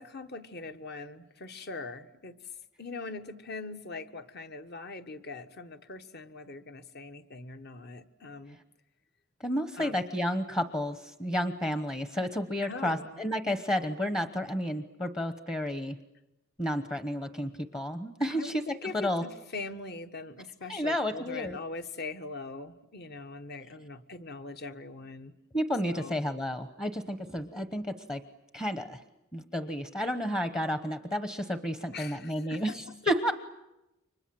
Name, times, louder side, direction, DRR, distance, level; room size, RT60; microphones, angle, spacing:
voice 1, 0.0-2.4 2.8-8.6 9.8-10.0 12.6-13.2 18.3-25.3 25.9-26.2 31.9-33.0, left 3 dB, 50° left, 8 dB, 1.4 m, -42 dB
voice 2, 9.4-16.0 16.6-19.2 20.7-21.6 25.5-28.2 28.5-29.0 29.3-33.3, equal, 15° left, 9 dB, 1.0 m, -31 dB
30.0 x 24.5 x 7.7 m, 0.93 s
head